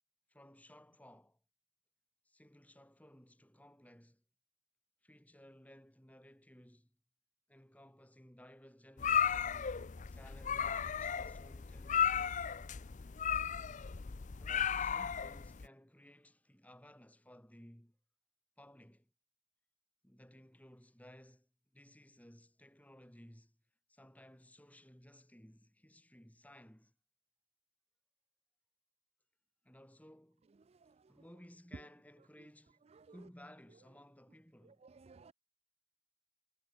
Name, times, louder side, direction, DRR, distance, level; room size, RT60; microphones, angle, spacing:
voice 1, 0.3-1.4 2.3-4.2 5.0-7.0 7.5-9.8 10.1-12.5 14.4-18.0 18.6-19.1 20.0-23.6 23.9-26.9 29.6-30.5 31.1-34.9, equal, 10° left, 4.2 m, -59 dB
sound 1, 9.0-15.7, left 8 dB, 40° left, 0.5 m, -35 dB
voice 2, 30.7-31.2 32.9-33.2 34.6-35.3, right 4 dB, 30° right, 0.4 m, -60 dB
head